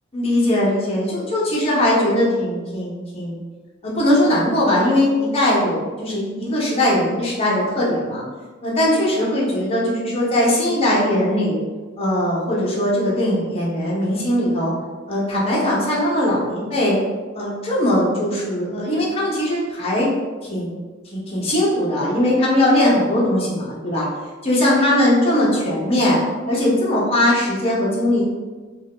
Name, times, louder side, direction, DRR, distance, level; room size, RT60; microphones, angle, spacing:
voice 1, 0.1-3.4 3.8-8.2 8.6-11.6 12.0-14.7 15.1-17.0 17.4-20.1 20.5-20.8 21.1-24.0 24.4-26.2 26.5-28.2, left 1 dB, 30° left, -5 dB, 0.8 m, -20 dB
2.6 x 2.3 x 3.5 m, 1.3 s
head